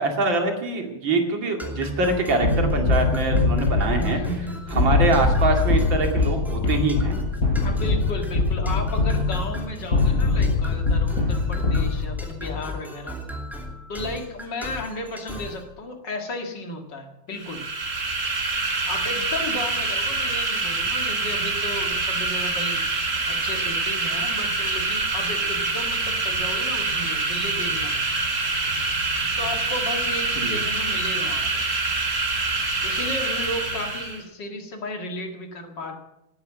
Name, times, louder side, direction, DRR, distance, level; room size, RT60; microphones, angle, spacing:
voice 1, 0.0-4.2 4.7-7.2 30.4-30.6, right 2 dB, 70° right, 3 dB, 3.1 m, -24 dB
sound 1, 1.6-15.7, left 2 dB, ahead, 2.4 m, -35 dB
sound 2, 2.4-12.4, left 3 dB, 40° left, 5.0 m, -23 dB
voice 2, 4.0-5.1 7.6-13.2 13.9-17.6 18.9-22.8 23.3-28.1 29.4-31.6 32.8-36.0, left 1 dB, 60° left, 4 dB, 2.5 m, -34 dB
sound 3, 17.3-34.2, right 3 dB, 40° right, 2.6 m, -25 dB
18.5 x 9.6 x 7.4 m, 0.88 s
omnidirectional pair, 2.2 m